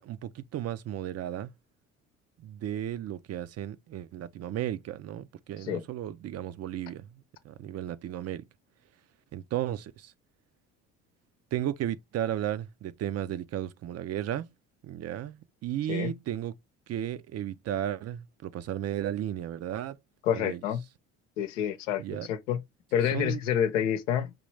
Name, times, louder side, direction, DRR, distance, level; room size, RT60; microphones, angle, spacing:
voice 1, 0.0-1.5 2.4-8.5 9.3-10.1 11.5-14.5 14.8-16.5 16.9-20.0 20.3-20.6 22.0-22.3 23.1-23.4, right 11 dB, 45° right, 0.5 m, -34 dB
voice 2, 20.2-20.8 21.4-22.6 22.9-24.3, left 9 dB, 85° left, 0.8 m, -28 dB
5.3 x 3.0 x 3.1 m
hypercardioid pair, 65°, 36 cm